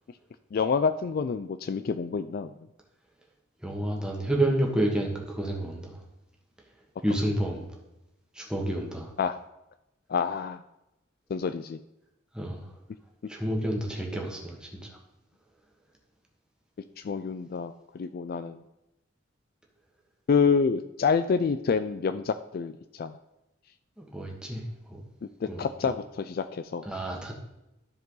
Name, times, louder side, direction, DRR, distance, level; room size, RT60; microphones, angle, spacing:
voice 1, 0.5-2.5 9.2-9.3 10.1-10.6 11.3-11.8 17.0-18.6 20.3-23.2 25.4-26.8, left 5 dB, 50° left, 11 dB, 0.3 m, -27 dB
voice 2, 3.6-6.0 7.0-7.7 8.3-9.1 12.3-12.6 13.3-15.0 24.0-24.6 24.9-25.0 25.5-25.9 26.8-27.3, right 1 dB, 5° right, -1 dB, 1.4 m, -30 dB
13.5 x 4.7 x 3.9 m, 0.91 s
head